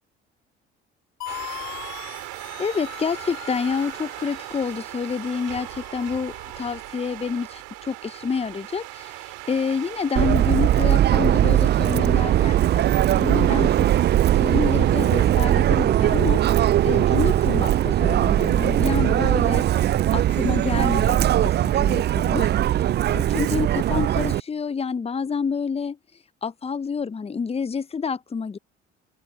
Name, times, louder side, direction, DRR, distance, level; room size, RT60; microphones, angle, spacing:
sound 1, 1.2-7.0, left 15 dB, 60° left, 7.5 m, -41 dB
sound 2, 1.3-20.5, right 22 dB, 65° right, 3.7 m, -40 dB
voice 1, 2.6-12.8 13.1-13.9 14.4-16.4 16.8-19.6 20.1-22.5 23.1-26.0 26.4-28.6, left 5 dB, 20° left, 0.7 m, -28 dB
Subway metro underground, 10.2-24.4, right 12 dB, 30° right, 0.4 m, -20 dB
open air
figure-of-eight pair, 55°, 32 cm